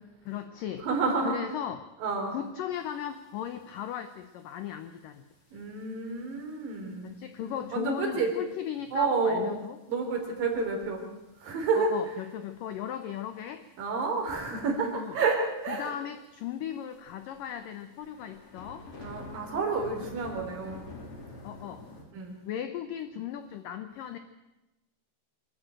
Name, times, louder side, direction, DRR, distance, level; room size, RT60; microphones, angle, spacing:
voice 1, 0.3-0.9 1.2-1.9 2.3-5.3 7.0-9.8 11.8-13.7 15.0-15.2 15.7-18.9 21.4-22.0 22.5-24.2, left 10 dB, 85° left, 10 dB, 1.9 m, -37 dB
voice 2, 0.8-1.4 2.0-2.3 5.5-7.1 7.4-8.3 8.9-9.5 9.9-11.1 11.4-12.0 13.8-15.9 19.0-20.8 22.1-22.4, right 4 dB, 50° right, 2 dB, 5.3 m, -29 dB
sound 1, 3.4-3.5 3.8-4.1 4.8-5.0 5.6-5.7 6.3-6.4 6.7-6.8 7.1-7.2 8.3-8.5 8.9-9.0 9.9-10.0 10.6-11.0 11.4-11.5 12.1-12.7 13.8-14.1 14.4-14.5 14.8-14.9 15.0-15.1 15.8-15.9 16.2-16.3 16.9-22.0, left 2 dB, 35° left, 3.9 m, -46 dB
25.0 x 13.5 x 9.0 m, 1.0 s
omnidirectional pair, 5.2 m